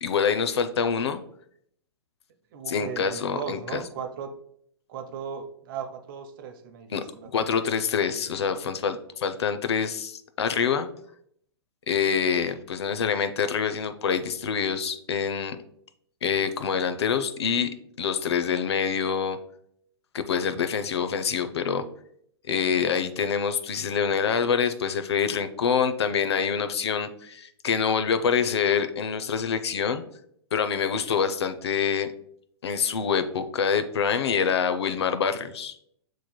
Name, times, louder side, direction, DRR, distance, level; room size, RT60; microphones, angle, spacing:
voice 1, 0.0-1.2 2.7-3.8 6.9-7.0 7.3-10.9 11.9-15.6 16.2-17.7 18.0-19.4 20.1-21.8 22.5-30.0 30.5-32.1 32.6-35.8, left 6 dB, 75° left, 10 dB, 0.5 m, -26 dB
voice 2, 2.5-4.3 4.9-7.3, right 7 dB, 50° right, 6 dB, 0.7 m, -37 dB
7.0 x 3.1 x 2.2 m, 0.69 s
hypercardioid pair, 115°, 14 cm